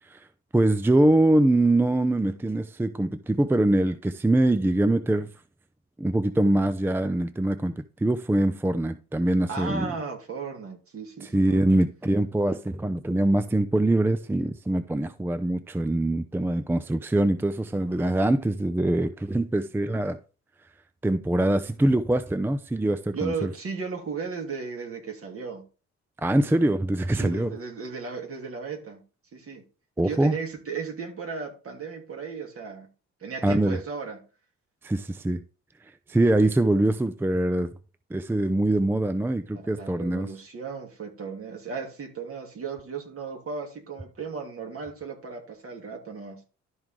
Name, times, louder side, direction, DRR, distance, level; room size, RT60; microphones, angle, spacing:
voice 1, 0.5-5.3 6.0-9.9 11.2-20.2 21.0-23.5 26.2-27.5 30.0-30.4 33.4-33.8 34.8-35.4 36.1-37.7 38.1-40.3, right 1 dB, 5° right, 0.5 m, -23 dB
voice 2, 9.5-11.7 23.1-25.7 27.2-29.0 29.3-29.6 30.0-32.9 33.2-34.2 39.5-46.4, right 5 dB, 50° right, 2.9 m, -35 dB
12.5 x 4.7 x 3.7 m
cardioid pair, 90°, 30 cm